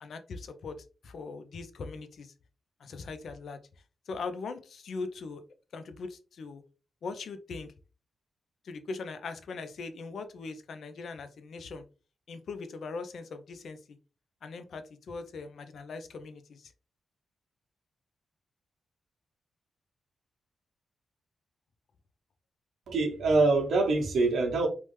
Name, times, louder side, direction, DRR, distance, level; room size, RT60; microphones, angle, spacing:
voice 1, 0.0-2.3 2.8-3.6 4.1-5.4 5.7-6.6 7.0-7.7 8.6-11.9 12.3-14.0 14.4-16.7, left 4 dB, 70° left, 9 dB, 0.4 m, -40 dB
voice 2, 22.9-24.7, right 3 dB, 80° right, 1 dB, 0.9 m, -24 dB
3.1 x 2.0 x 3.0 m, 0.34 s
cardioid pair, 65°, 0 cm